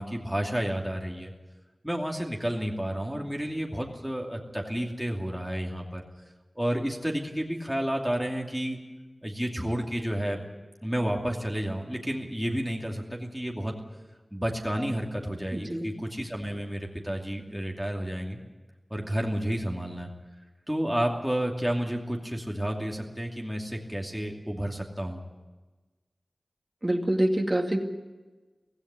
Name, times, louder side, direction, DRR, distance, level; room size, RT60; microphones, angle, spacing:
voice 1, 0.0-1.3 1.8-6.0 6.5-8.8 9.2-10.4 10.8-13.7 14.3-18.4 18.9-20.1 20.7-25.2, equal, 5° right, 0 dB, 2.7 m, -31 dB
voice 2, 15.5-15.9 26.8-27.8, right 1 dB, 25° right, 4 dB, 2.4 m, -25 dB
17.0 x 16.0 x 10.0 m, 1.2 s
wide cardioid pair, 70°, 0 cm